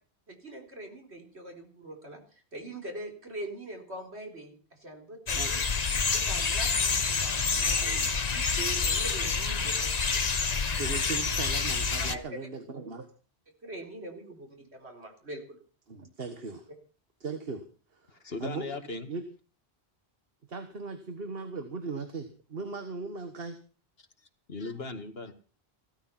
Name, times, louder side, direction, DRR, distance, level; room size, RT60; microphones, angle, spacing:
voice 1, 0.3-5.6 6.1-7.9 8.3-9.9 10.2-10.3 12.0-12.2 13.6-15.6, right 2 dB, 80° right, 3 dB, 4.5 m, -43 dB
sound 1, 5.3-12.2, left 5 dB, 40° left, 1.1 m, -28 dB
voice 2, 10.8-13.1 15.9-16.7 17.2-17.6 17.9-18.7 19.1-19.2 20.5-23.6, right 4 dB, 60° right, 8 dB, 1.7 m, -38 dB
voice 3, 18.1-19.1 24.5-25.3, left 3 dB, 65° left, 7 dB, 2.2 m, -38 dB
16.5 x 13.0 x 5.8 m, 0.38 s
omnidirectional pair, 1.1 m